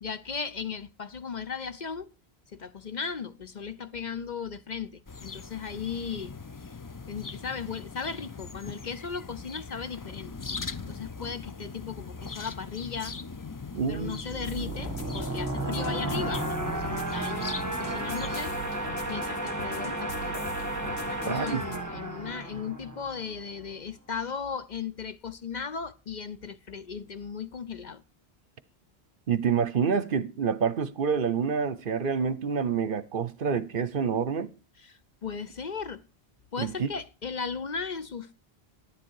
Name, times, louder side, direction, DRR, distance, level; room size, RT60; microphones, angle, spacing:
voice 1, 0.0-2.1 2.5-6.8 7.1-10.3 10.9-13.2 13.9-17.5 17.8-18.6 19.1-20.4 21.1-28.0 34.8-36.0 36.5-38.3, left 6 dB, 50° left, 0.8 m, -36 dB
sound 1, 5.1-18.4, left 4 dB, 30° left, 0.4 m, -40 dB
voice 2, 13.7-14.2 21.3-21.6 29.3-34.5 36.6-36.9, right 6 dB, 60° right, 0.9 m, -27 dB
sound 2, 13.9-23.4, right 1 dB, 15° right, 1.8 m, -33 dB
sound 3, 14.4-21.8, equal, 85° left, 2.0 m, -43 dB
10.5 x 10.5 x 4.6 m
omnidirectional pair, 1.1 m